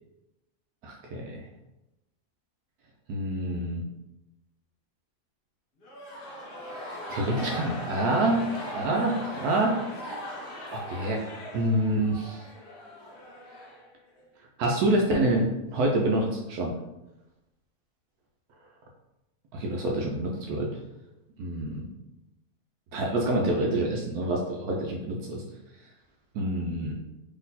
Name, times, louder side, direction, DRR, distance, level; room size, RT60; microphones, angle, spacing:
voice 1, 0.8-1.4 3.1-3.8 6.9-9.7 10.7-11.2 11.5-12.4 14.6-16.7 19.5-20.7 21.4-21.9 22.9-25.4 26.3-27.0, right 1 dB, 75° right, 0 dB, 1.1 m, -27 dB
sound 1, 5.8-14.3, equal, 40° left, 0.8 m, -39 dB
4.1 x 3.1 x 4.0 m, 0.95 s
omnidirectional pair, 1.7 m